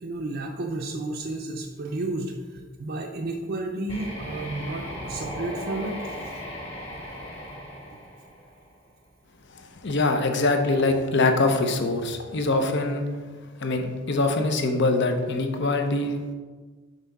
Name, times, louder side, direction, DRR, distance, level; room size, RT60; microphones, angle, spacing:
voice 1, 0.0-6.1, right 2 dB, 50° right, 0 dB, 0.5 m, -32 dB
sound 1, 3.9-8.8, equal, 30° left, 2.1 m, -37 dB
voice 2, 9.8-13.1 13.6-16.3, left 2 dB, 55° left, 5 dB, 0.7 m, -23 dB
5.7 x 3.7 x 5.8 m, 1.4 s
head